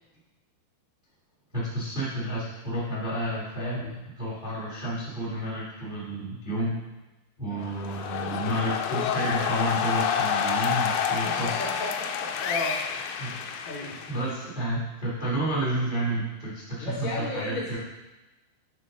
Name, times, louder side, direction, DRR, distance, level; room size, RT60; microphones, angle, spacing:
voice 1, 1.5-6.8 7.4-11.5 13.2-13.5 14.1-17.8, right 1 dB, 75° right, -7 dB, 0.4 m, -30 dB
voice 2, 3.5-4.0 7.4-7.7 11.2-12.8 13.6-13.9 16.8-17.8, left 1 dB, 70° left, -5 dB, 1.7 m, -34 dB
sound 1, 7.6-14.5, left 8 dB, 85° left, 2.8 m, -29 dB
9.2 x 3.7 x 5.2 m, 1.1 s
omnidirectional pair, 4.8 m